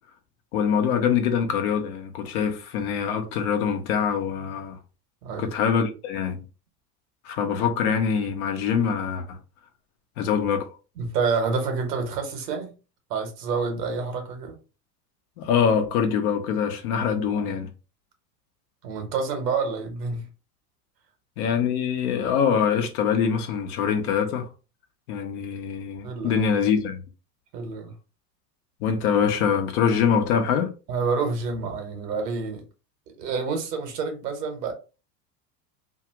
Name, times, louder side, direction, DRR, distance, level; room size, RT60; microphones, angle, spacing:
voice 1, 0.5-4.8 5.4-6.4 7.2-9.4 10.2-10.7 15.4-17.7 21.4-24.5 25.1-27.0 28.8-30.7, left 7 dB, 65° left, 0.9 m, -24 dB
voice 2, 11.0-12.8 13.1-14.6 17.4-17.5 18.8-20.3 26.0-26.5 27.5-27.9 30.9-32.6 33.2-34.7, right 4 dB, 80° right, 1.2 m, -28 dB
2.8 x 2.4 x 2.8 m
hypercardioid pair, 95°, 48 cm